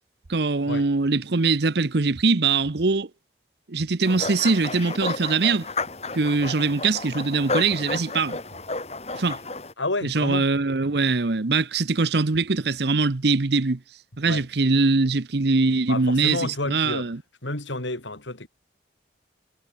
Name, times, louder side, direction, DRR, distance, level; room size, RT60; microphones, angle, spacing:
voice 1, 0.3-3.1 3.7-5.7 6.1-8.4 9.1-9.4 10.0-13.8 14.2-17.2, right 4 dB, 65° right, 0.9 m, -22 dB
sound 1, 4.0-9.7, left 3 dB, 35° left, 2.1 m, -32 dB
voice 2, 9.8-10.5 14.2-14.4 15.9-17.1 17.4-18.5, left 2 dB, 85° left, 4.0 m, -30 dB
head